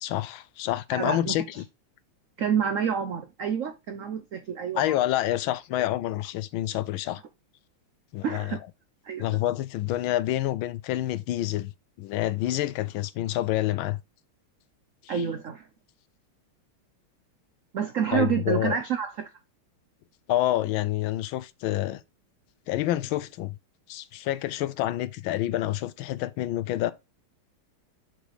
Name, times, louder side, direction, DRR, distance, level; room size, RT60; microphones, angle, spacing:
voice 1, 0.0-1.6 4.7-7.2 8.1-8.6 9.2-11.7 12.0-14.0 15.0-15.2 18.1-18.8 20.3-22.0 22.7-23.5 23.9-26.9, left 14 dB, 75° left, 1.3 m, -28 dB
voice 2, 0.9-1.6 2.4-5.0 8.2-8.6 9.0-9.3 15.1-15.7 17.7-19.3, right 8 dB, 85° right, 0.7 m, -28 dB
6.9 x 4.0 x 4.7 m
omnidirectional pair, 2.3 m